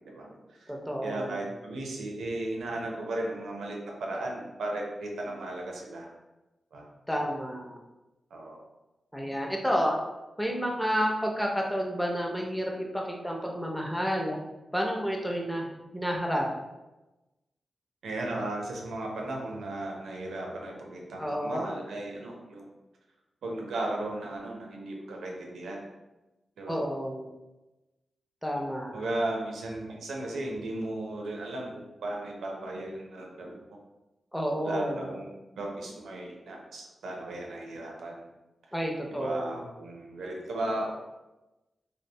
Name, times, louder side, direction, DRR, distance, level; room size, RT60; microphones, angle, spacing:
voice 1, 0.0-0.7 1.0-6.1 6.7-6.8 8.3-8.6 18.0-22.7 23.4-25.8 26.6-26.8 28.9-33.6 34.6-38.2 39.1-40.9, right 1 dB, 90° right, 0 dB, 0.5 m, -35 dB
voice 2, 0.7-1.4 7.1-7.8 9.1-10.0 10.4-14.4 14.7-15.7 15.9-16.5 21.2-21.7 26.7-27.3 28.4-29.0 34.3-35.1 38.7-39.6, equal, 5° left, -1 dB, 0.5 m, -30 dB
2.6 x 2.1 x 2.6 m, 1.0 s
cardioid pair, 55°, 0 cm